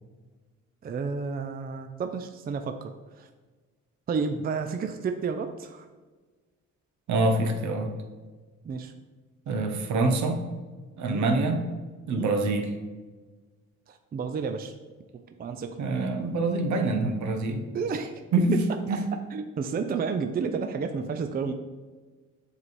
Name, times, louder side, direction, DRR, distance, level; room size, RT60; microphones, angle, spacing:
voice 1, 0.8-3.3 4.1-5.9 8.6-8.9 11.0-11.3 12.1-12.3 13.9-14.7 15.1-15.8 17.7-18.6 19.1-21.5, right 5 dB, 30° right, 7 dB, 0.4 m, -31 dB
voice 2, 7.1-7.9 9.5-10.4 11.0-11.6 12.1-12.7 15.8-17.6 18.3-18.6 18.9-19.0, right 2 dB, 70° right, 5 dB, 0.9 m, -25 dB
7.1 x 3.3 x 4.2 m, 1.3 s
cardioid pair, 90°, 30 cm